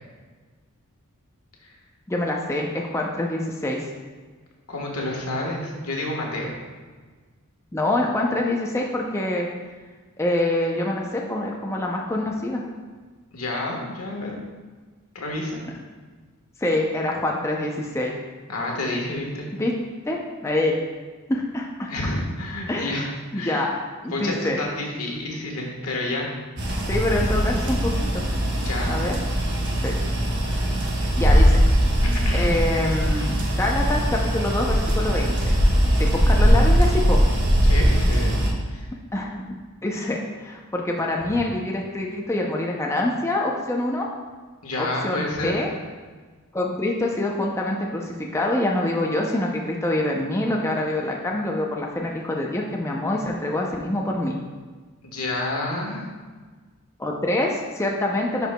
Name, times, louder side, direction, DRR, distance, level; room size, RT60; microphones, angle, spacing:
voice 1, 2.1-3.9 7.7-9.5 10.2-12.6 16.6-18.1 19.6-19.7 20.1-20.8 21.3-21.9 22.7-22.9 23.3-23.7 24.0-24.6 26.9-28.2 28.9-29.1 29.8-29.9 31.2-31.6 32.3-35.5 36.0-37.2 39.1-39.5 39.8-44.1 44.8-45.7 46.5-54.4 57.0-58.5, left 1 dB, 15° left, -1 dB, 0.5 m, -25 dB
voice 2, 4.7-6.5 13.3-14.3 15.1-15.6 18.5-19.5 21.9-23.1 23.3-23.7 24.1-26.3 28.6-28.9 32.2-32.5 37.6-38.3 38.7-38.9 44.6-45.6 55.0-56.1, left 2 dB, 80° left, -1 dB, 1.3 m, -29 dB
sound 1, 26.6-38.5, equal, 55° right, 1.1 m, -20 dB
10.0 x 4.6 x 2.2 m, 1.4 s
head